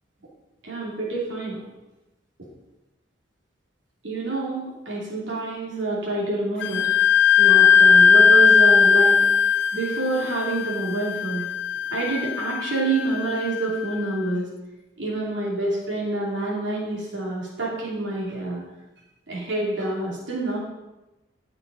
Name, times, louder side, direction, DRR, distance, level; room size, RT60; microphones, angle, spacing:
voice 1, 0.6-1.6 4.0-6.9 7.4-9.2 9.7-11.4 11.9-14.5 15.0-18.6 19.3-20.6, right 2 dB, 80° right, -5 dB, 2.8 m, -27 dB
Wind instrument woodwind instrument, 6.6-14.0, left 6 dB, 65° left, 0.3 m, -18 dB
14.5 x 5.9 x 4.0 m, 1.0 s
head